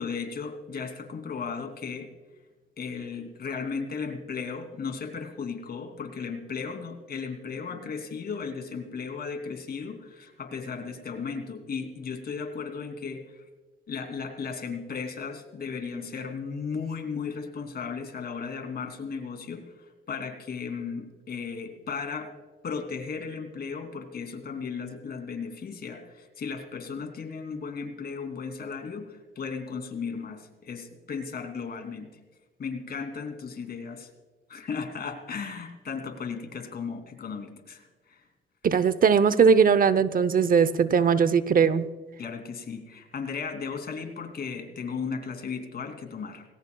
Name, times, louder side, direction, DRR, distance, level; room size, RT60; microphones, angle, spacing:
voice 1, 0.0-2.1 2.8-13.4 13.9-22.3 22.6-32.1 32.6-34.1 34.5-38.2 42.2-46.4, left 5 dB, 50° left, 6 dB, 2.9 m, -35 dB
voice 2, 38.6-41.9, right 6 dB, 45° right, 15 dB, 0.7 m, -20 dB
21.0 x 17.5 x 2.3 m, 1.3 s
cardioid pair, 90°, 20 cm